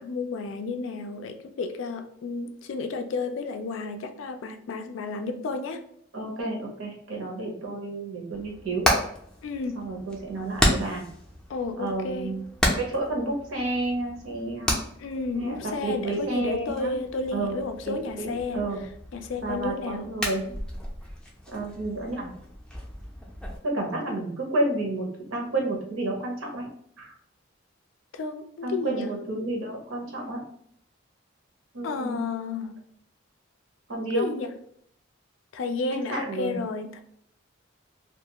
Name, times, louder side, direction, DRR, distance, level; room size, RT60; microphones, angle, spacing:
voice 1, 0.0-5.8 9.4-9.9 11.5-12.4 15.0-18.7 19.1-20.1 28.1-29.1 31.8-32.8 34.1-34.5 35.5-37.0, left 3 dB, 70° left, 0.3 m, -32 dB
voice 2, 6.1-8.9 9.7-11.0 11.8-12.4 12.8-14.8 15.3-16.9 17.3-17.6 17.9-18.8 19.4-20.6 21.5-22.3 23.6-26.7 27.0-27.1 28.6-30.4 31.7-32.2 33.9-34.3 36.1-36.6, right 2 dB, 85° right, 0.8 m, -30 dB
Hammer, 8.3-23.6, equal, 5° left, 0.4 m, -32 dB
2.4 x 2.3 x 2.8 m
head